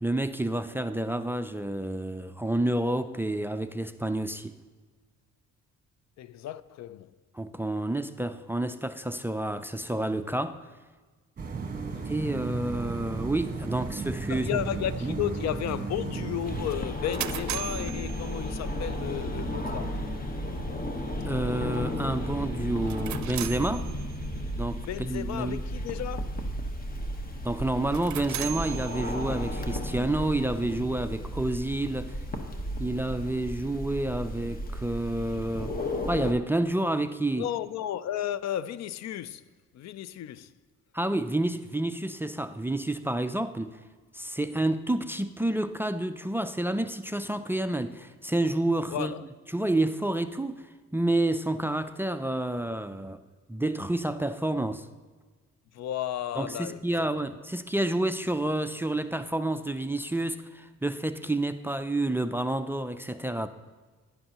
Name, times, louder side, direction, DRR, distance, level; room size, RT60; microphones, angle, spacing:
voice 1, 0.0-4.6 7.3-10.6 12.0-14.5 15.0-15.2 21.2-23.9 24.6-25.6 27.4-32.2 32.8-35.8 36.1-37.4 40.9-43.8 44.1-49.1 49.5-53.2 53.5-54.9 56.4-63.5, right 1 dB, 10° right, 0.4 m, -29 dB
voice 2, 6.2-7.1 11.9-12.1 14.3-20.0 24.9-26.4 37.4-39.4 39.7-40.5 48.9-49.2 55.7-57.1, left 11 dB, 60° left, 0.4 m, -33 dB
sound 1, 11.4-16.7, right 4 dB, 30° right, 1.5 m, -34 dB
sound 2, 16.4-36.3, equal, 30° left, 1.2 m, -34 dB
sound 3, 16.7-18.9 22.7-24.4 27.8-29.6, right 12 dB, 65° right, 0.5 m, -38 dB
12.0 x 10.0 x 2.9 m
cardioid pair, 90°, 30 cm